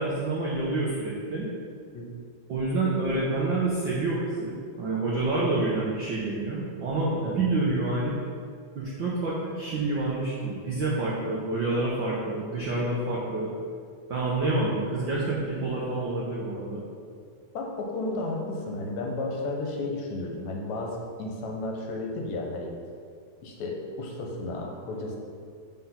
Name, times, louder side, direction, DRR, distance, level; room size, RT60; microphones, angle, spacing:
voice 1, 0.0-1.5 2.5-8.2 8.7-13.5 14.1-16.8, right 2 dB, 70° right, -6 dB, 1.1 m, -28 dB
voice 2, 7.2-7.6 12.3-12.5 17.5-22.7 23.4-25.2, left 2 dB, 75° left, 1 dB, 2.2 m, -33 dB
5.9 x 5.0 x 5.7 m, 2.2 s
omnidirectional pair, 3.3 m